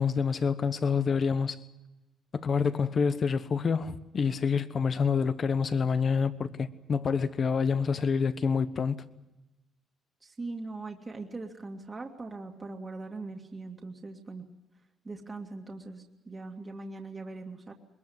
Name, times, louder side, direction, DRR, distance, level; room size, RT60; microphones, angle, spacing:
voice 1, 0.0-1.6 2.3-9.0, left 6 dB, 45° left, 1.2 m, -27 dB
voice 2, 10.2-14.5 15.0-17.7, right 3 dB, 25° right, 2.2 m, -41 dB
21.5 x 21.5 x 7.9 m
cardioid pair, 95°, 0 cm